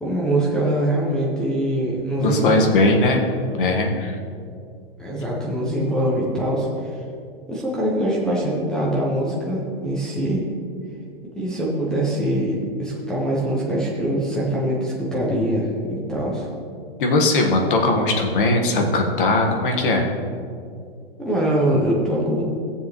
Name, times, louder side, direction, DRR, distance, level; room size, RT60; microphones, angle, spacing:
voice 1, 0.0-2.6 5.0-6.7 7.5-10.4 11.3-16.5 21.2-22.4, right 1 dB, ahead, -5 dB, 0.4 m, -23 dB
voice 2, 2.2-3.2 3.5-4.2 17.0-20.1, left 2 dB, 60° left, 2 dB, 1.5 m, -19 dB
16.5 x 7.1 x 3.1 m, 2.4 s
supercardioid pair, 165°, 30 cm